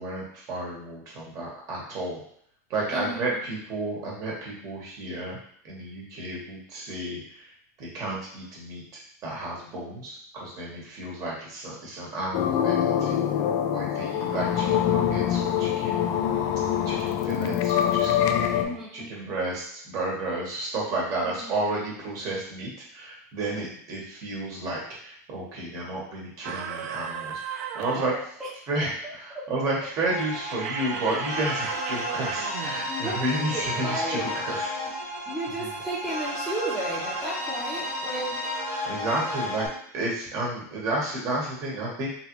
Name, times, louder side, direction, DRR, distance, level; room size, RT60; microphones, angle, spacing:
voice 1, 0.0-2.2 2.7-5.4 5.6-7.5 7.8-13.2 13.7-16.1 16.8-18.1 18.5-28.1 28.7-34.7 35.6-35.7 38.8-39.7 39.9-42.1, right 2 dB, 40° right, -4 dB, 1.3 m, -32 dB
sound 1, 12.3-18.6, left 9 dB, 40° left, 0.3 m, -24 dB
voice 2, 18.6-19.1 21.4-21.5 27.9-28.5 32.9-33.1 33.5-34.3 35.3-38.5 39.2-39.3, right 1 dB, ahead, -8 dB, 0.9 m, -33 dB
sound 2, 26.4-28.3 30.4-32.9, right 7 dB, 65° right, 0.4 m, -35 dB
sound 3, 30.1-39.7, left 1 dB, 75° left, 1.4 m, -32 dB
3.4 x 2.5 x 3.0 m, 0.66 s
supercardioid pair, 125°, 9 cm